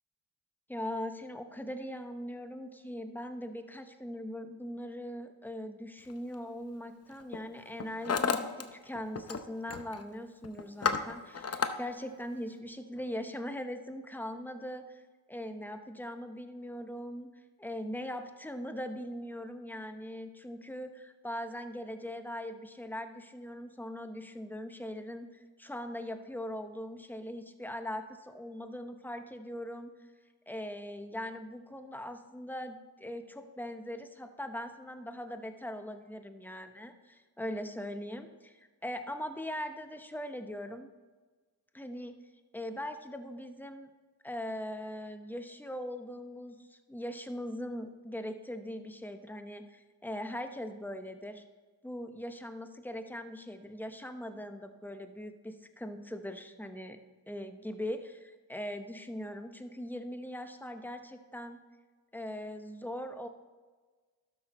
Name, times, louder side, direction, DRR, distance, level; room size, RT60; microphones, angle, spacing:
voice 1, 0.7-15.0 15.3-30.1 30.5-40.9 41.7-42.2 42.5-43.9 44.2-51.4 51.8-57.0 57.3-61.6 62.1-63.3, left 1 dB, 5° left, 7 dB, 1.0 m, -40 dB
Hammer, 6.1-6.3 7.1-7.4 7.7-8.6 8.9-9.4 9.7-10.0 10.4-11.7, left 5 dB, 30° left, 0.8 m, -32 dB
12.5 x 6.3 x 3.1 m, 1.4 s
supercardioid pair, 55°, 50 cm